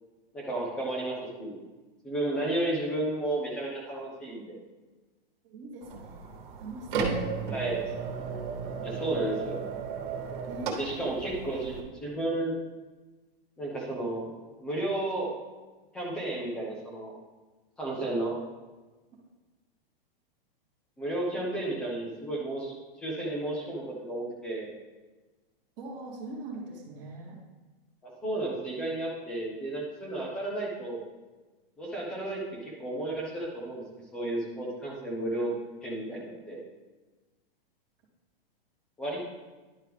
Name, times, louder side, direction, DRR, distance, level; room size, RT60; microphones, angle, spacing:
voice 1, 0.3-1.6 2.0-4.6 7.5-7.9 8.8-9.6 10.8-12.5 13.6-14.3 14.6-15.3 15.9-17.1 17.8-18.3 21.0-24.7 28.0-31.0 31.8-33.8 34.1-35.5 35.8-36.6 39.0-39.2, right 1 dB, 5° left, -3 dB, 0.3 m, -32 dB
voice 2, 5.4-7.3 10.5-11.2 25.8-27.4, right 2 dB, 25° right, -7 dB, 1.0 m, -42 dB
sound 1, 5.8-11.8, right 5 dB, 55° right, 1.3 m, -34 dB
10.5 x 4.4 x 3.4 m, 1.2 s
supercardioid pair, 165°, 30 cm